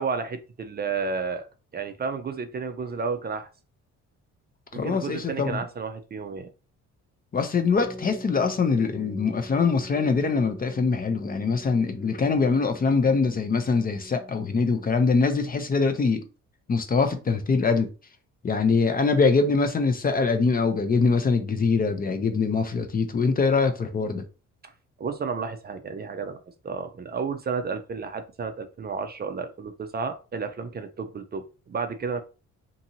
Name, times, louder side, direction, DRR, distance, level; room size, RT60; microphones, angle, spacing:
voice 1, 0.0-1.5 1.7-3.5 4.7-6.5 25.0-32.2, right 5 dB, 35° right, 0.4 m, -32 dB
voice 2, 4.7-5.6 7.3-16.3 16.7-17.9 18.4-24.2, left 4 dB, 30° left, 0.5 m, -23 dB
sound 1, 7.7-15.2, left 1 dB, 5° right, 1.1 m, -43 dB
2.7 x 2.6 x 2.7 m
cardioid pair, 90°, 30 cm